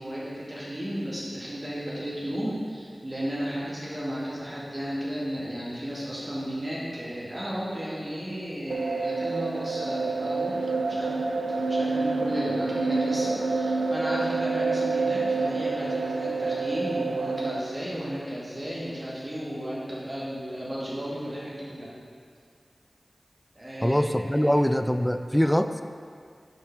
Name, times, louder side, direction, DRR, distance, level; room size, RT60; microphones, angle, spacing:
voice 1, 0.0-21.9 23.5-24.6, equal, 35° right, -8 dB, 1.7 m, -34 dB
sound 1, 8.7-17.6, right 3 dB, 85° right, 0.4 m, -27 dB
voice 2, 23.8-25.8, equal, 5° left, 9 dB, 0.3 m, -23 dB
10.5 x 4.6 x 3.4 m, 2.2 s
wide cardioid pair, 45°, 0 cm